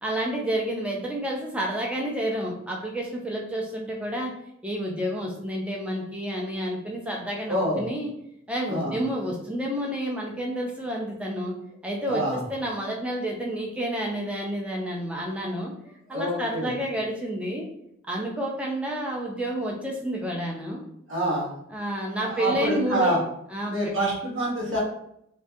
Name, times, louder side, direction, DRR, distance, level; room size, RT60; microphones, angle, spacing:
voice 1, 0.0-4.3 4.6-8.1 8.5-11.5 11.8-12.2 12.5-15.7 16.1-17.7 18.1-20.8 21.7-23.1 23.5-23.7, equal, 5° right, -1 dB, 0.3 m, -29 dB
voice 2, 7.5-7.8 8.7-9.0 12.1-12.4 16.1-16.8 21.1-21.5 22.2-23.2 23.6-24.8, right 1 dB, 70° right, -5 dB, 0.7 m, -27 dB
2.2 x 2.1 x 2.6 m, 0.75 s
head